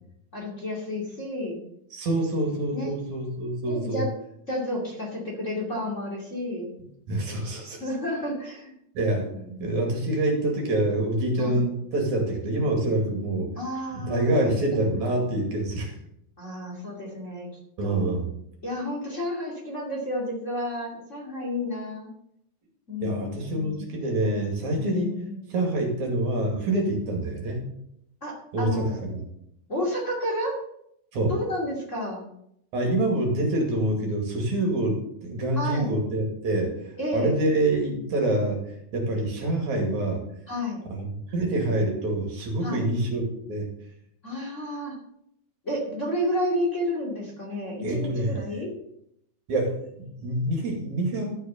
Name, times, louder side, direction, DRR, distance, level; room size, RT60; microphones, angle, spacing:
voice 1, 0.3-1.6 2.7-3.0 3.7-4.1 4.5-6.7 7.8-8.7 9.3-9.6 11.4-11.6 13.6-14.6 16.4-17.5 17.8-18.1 18.6-22.1 22.9-23.8 24.7-25.5 28.2-29.0 29.7-30.6 31.3-32.2 35.5-35.9 37.0-37.3 40.5-40.8 42.6-42.9 44.2-44.9 45.6-48.8, left 1 dB, 25° left, -2 dB, 2.7 m, -31 dB
voice 2, 1.9-4.0 7.1-7.8 9.0-9.3 9.6-13.5 13.9-15.9 17.8-18.3 23.0-25.2 25.5-27.6 28.5-29.2 31.1-31.3 32.7-36.7 37.1-38.6 38.9-40.2 40.9-43.7 47.8-48.4 49.5-51.3, right 1 dB, 60° right, 1 dB, 3.7 m, -26 dB
13.0 x 6.5 x 6.8 m, 0.74 s
omnidirectional pair, 3.8 m